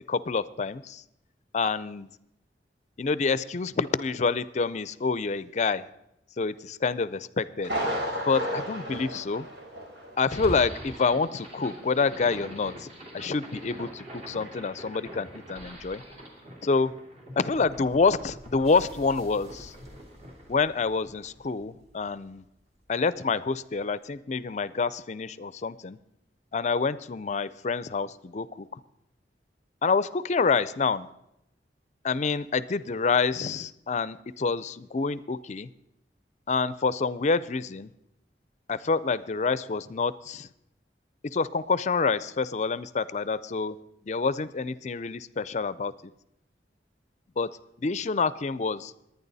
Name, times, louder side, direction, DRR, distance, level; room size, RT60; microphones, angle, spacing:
voice 1, 0.1-1.0 1.5-2.1 3.0-5.8 6.4-7.7 8.3-9.5 10.2-12.9 13.1-16.0 16.6-16.9 17.4-19.7 20.5-22.4 22.9-26.0 26.5-28.8 29.8-31.1 32.0-35.7 36.5-37.9 38.7-40.5 41.2-43.8 44.1-45.9 47.4-47.5 47.8-48.9, left 4 dB, 40° left, 17 dB, 0.5 m, -27 dB
Thunder, 7.6-10.2 10.5-10.6 11.1-11.2, equal, 85° right, 3.5 m, -32 dB
sound 1, 10.2-22.5, equal, 40° right, 2.7 m, -44 dB
21.0 x 9.5 x 4.1 m, 0.84 s
head